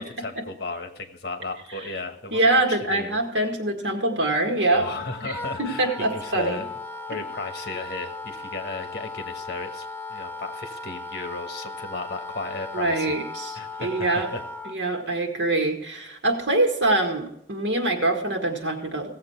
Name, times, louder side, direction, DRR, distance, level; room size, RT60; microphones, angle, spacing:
voice 1, 0.0-3.2 3.5-3.6 3.8-3.9 4.7-6.7 7.1-13.2 13.5-14.4, left 3 dB, 60° left, 6 dB, 1.3 m, -35 dB
voice 2, 2.3-4.8 5.2-5.3 5.6-6.6 12.7-14.3 14.7-19.1, right 2 dB, 80° right, 3 dB, 1.9 m, -24 dB
Wind instrument woodwind instrument, 4.8-14.8, left 3 dB, 10° left, 0.5 m, -37 dB
16.5 x 7.6 x 4.5 m, 0.78 s
head